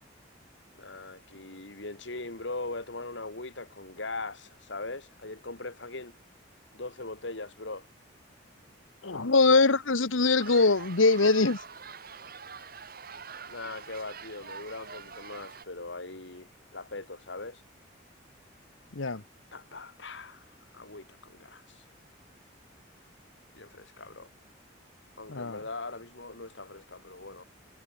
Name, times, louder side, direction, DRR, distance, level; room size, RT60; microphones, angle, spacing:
voice 1, 0.8-6.2 6.7-7.9 13.5-17.6 19.5-21.9 23.5-24.3 25.2-27.4, left 3 dB, 65° left, 2.7 m, -40 dB
voice 2, 9.0-11.6 18.9-19.2 25.3-25.6, left 3 dB, 90° left, 1.4 m, -23 dB
sound 1, 10.4-15.6, right 6 dB, 50° right, 2.9 m, -45 dB
head